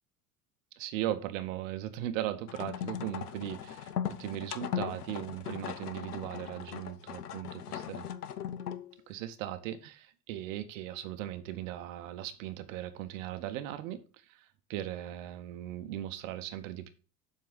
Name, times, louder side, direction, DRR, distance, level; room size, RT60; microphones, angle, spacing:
voice 1, 0.8-8.1 9.1-16.9, right 12 dB, 55° right, 11 dB, 0.9 m, -38 dB
sound 1, 2.5-8.9, left 9 dB, 75° left, 0.7 m, -38 dB
7.5 x 4.8 x 5.4 m, 0.36 s
figure-of-eight pair, 70°, 46 cm